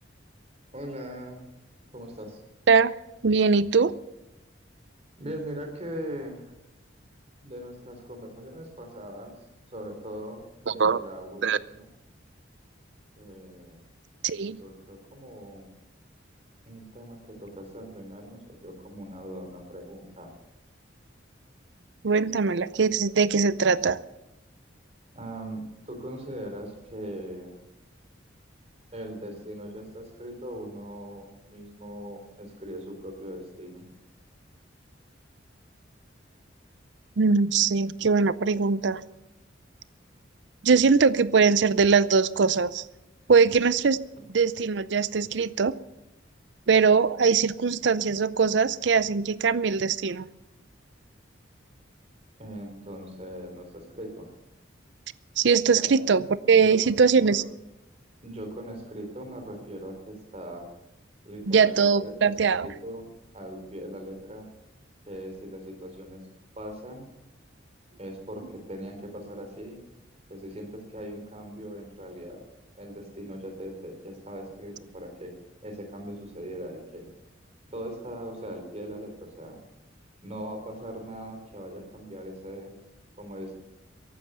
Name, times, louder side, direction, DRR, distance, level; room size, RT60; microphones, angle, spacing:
voice 1, 0.7-1.4 1.9-2.4 5.2-6.5 7.4-9.4 9.7-11.9 13.2-13.8 14.3-15.7 16.7-20.3 25.1-27.6 28.9-33.9 52.4-54.3 55.8-56.0 56.5-56.9 57.2-57.4 58.2-60.7 61.2-63.1 63.3-64.5 65.1-66.2 66.6-67.1 68.0-69.8 70.3-72.4 72.7-75.3 75.6-77.1 77.7-79.6 80.2-82.7 83.2-83.5, equal, 35° right, 4 dB, 3.6 m, -40 dB
voice 2, 3.2-3.9 10.7-11.0 11.4-11.6 14.2-14.6 22.0-24.0 37.2-39.0 40.6-42.8 43.3-44.0 44.3-45.8 46.7-50.3 55.4-57.4 61.5-62.7, right 5 dB, 65° right, 17 dB, 0.5 m, -21 dB
15.5 x 12.0 x 6.8 m, 0.94 s
head